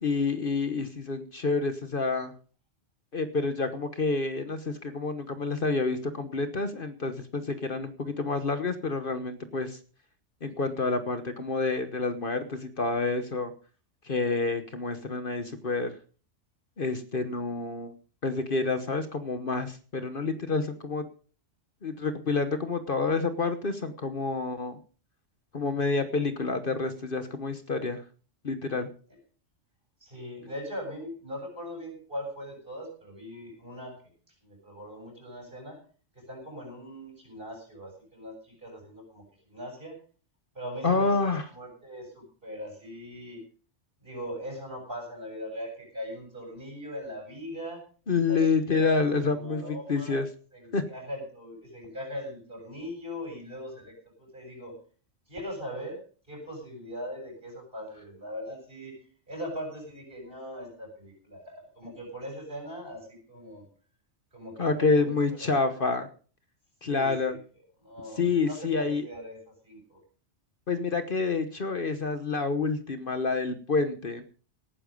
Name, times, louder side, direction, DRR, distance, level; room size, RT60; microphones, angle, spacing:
voice 1, 0.0-2.3 3.1-9.8 10.4-13.5 14.0-15.9 16.8-17.9 18.2-21.0 21.8-24.8 25.5-28.0 28.4-28.9 40.8-41.5 48.1-50.3 50.7-50.8 64.6-66.1 66.8-67.3 68.2-69.1 70.7-74.2, left 4 dB, 50° left, 10 dB, 1.3 m, -28 dB
voice 2, 30.0-34.1 34.4-35.8 36.1-40.0 40.5-43.4 44.0-47.8 48.2-48.4 48.7-50.2 50.5-54.7 55.3-56.0 56.3-59.0 59.3-63.7 64.3-65.7 66.9-67.4 67.8-70.0, equal, 50° right, 1 dB, 8.0 m, -40 dB
17.5 x 10.0 x 5.3 m, 0.41 s
omnidirectional pair, 1.2 m